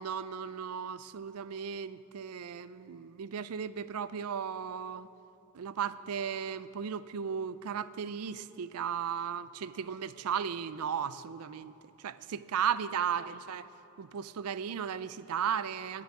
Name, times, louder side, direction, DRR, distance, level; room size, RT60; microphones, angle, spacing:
voice 1, 0.0-5.1 5.5-13.7 14.0-16.0, right 7 dB, 85° right, 15 dB, 0.4 m, -35 dB
10.5 x 7.8 x 9.8 m, 3.0 s
head